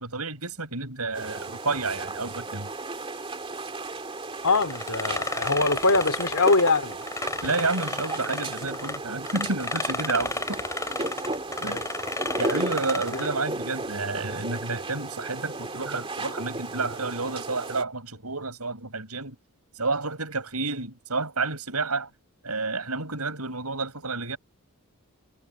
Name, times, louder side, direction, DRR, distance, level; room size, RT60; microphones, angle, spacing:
voice 1, 0.0-2.7 7.4-10.6 11.6-11.8 12.4-19.4 19.8-22.1 22.4-24.4, right 3 dB, 85° right, 7.8 m, -30 dB
sound 1, 1.1-17.8, right 2 dB, 25° right, 2.2 m, -35 dB
voice 2, 4.4-7.0 7.4-7.5 11.6-11.9 13.1-13.2, left 3 dB, 75° left, 3.2 m, -23 dB
sound 2, 4.5-9.0 9.3-13.3, left 3 dB, 15° left, 4.4 m, -32 dB
head